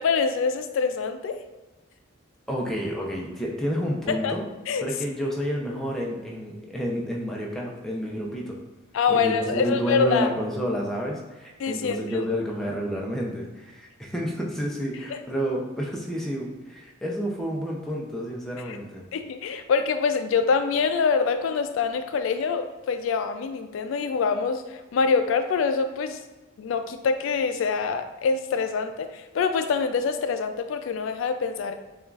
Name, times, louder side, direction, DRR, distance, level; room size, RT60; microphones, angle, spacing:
voice 1, 0.0-1.4 4.1-4.3 4.7-4.8 8.9-10.3 11.6-12.2 15.1-15.2 18.7-18.8 19.1-26.2 26.6-31.7, left 5 dB, 80° left, 8 dB, 0.3 m, -25 dB
voice 2, 2.5-4.4 4.8-8.6 9.1-19.0, equal, ahead, -3 dB, 0.5 m, -30 dB
6.8 x 2.4 x 2.4 m, 1.2 s
head